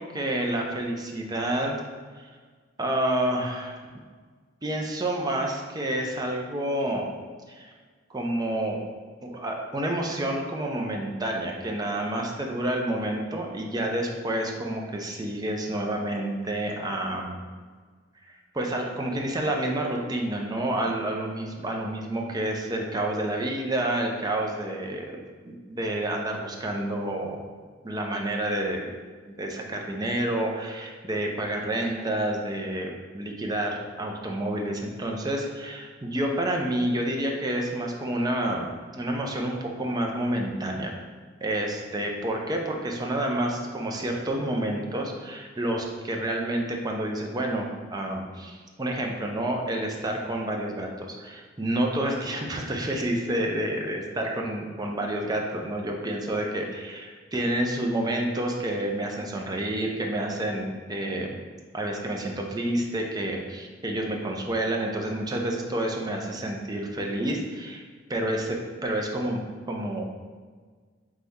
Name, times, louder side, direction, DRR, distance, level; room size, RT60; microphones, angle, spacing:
voice 1, 0.0-1.8 2.2-2.3 2.8-3.8 4.6-7.1 7.5-7.7 8.1-8.8 9.2-17.4 18.5-25.1 25.5-27.4 27.8-28.9 29.3-40.9 41.4-61.3 61.7-67.8 68.1-70.0, right 1 dB, 20° right, 1 dB, 0.5 m, -29 dB
4.0 x 3.3 x 3.6 m, 1.5 s
head